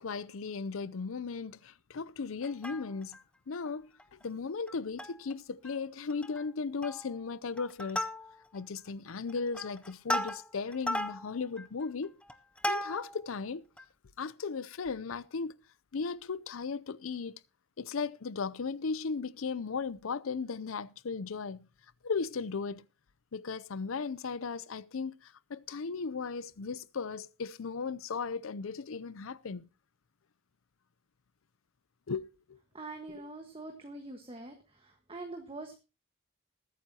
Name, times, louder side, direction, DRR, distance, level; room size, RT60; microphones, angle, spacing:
voice 1, 0.0-3.2 3.5-8.1 8.5-12.2 12.7-13.7 14.2-15.5 15.9-17.4 17.8-21.7 22.0-22.9 23.3-29.7 32.1-32.6, left 5 dB, 85° left, 0.6 m, -36 dB
Plucked string instrument, 2.4-3.2 3.7-3.8 4.0-4.2 4.7-5.3 5.6-5.8 6.1-6.5 6.8-7.2 7.6-8.6 9.1-13.3 13.8-13.9, left 1 dB, 5° left, 0.7 m, -36 dB
voice 2, 32.7-34.5 34.8-35.8, right 2 dB, 30° right, 1.4 m, -44 dB
21.0 x 9.3 x 2.8 m
head